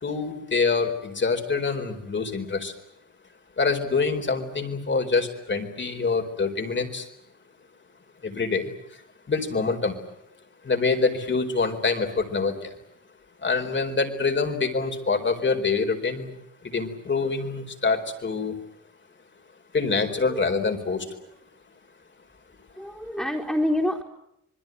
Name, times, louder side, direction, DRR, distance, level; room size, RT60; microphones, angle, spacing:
voice 1, 0.0-2.7 3.6-7.1 8.2-8.7 9.3-9.9 10.6-12.6 13.4-16.3 16.7-18.5 19.7-21.0, left 4 dB, 40° left, 6 dB, 4.5 m, -25 dB
voice 2, 20.1-20.9 22.8-24.0, left 1 dB, ahead, -3 dB, 3.9 m, -28 dB
27.0 x 21.5 x 9.4 m, 0.81 s
cardioid pair, 95°, 29 cm